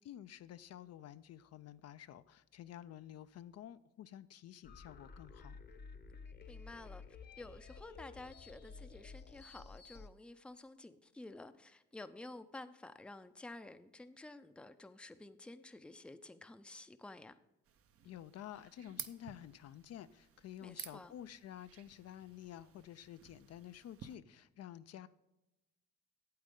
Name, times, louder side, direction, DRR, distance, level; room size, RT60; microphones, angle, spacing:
voice 1, 0.0-5.6 18.0-25.1, left 11 dB, 55° left, 0.4 m, -51 dB
sound 1, 4.6-10.1, left 5 dB, 35° left, 0.8 m, -53 dB
voice 2, 6.5-7.0 7.4-17.4 20.6-21.1, left 2 dB, 5° left, 0.5 m, -52 dB
sound 2, 17.6-24.2, right 8 dB, 50° right, 0.7 m, -53 dB
8.6 x 8.1 x 3.7 m
cardioid pair, 90°, 30 cm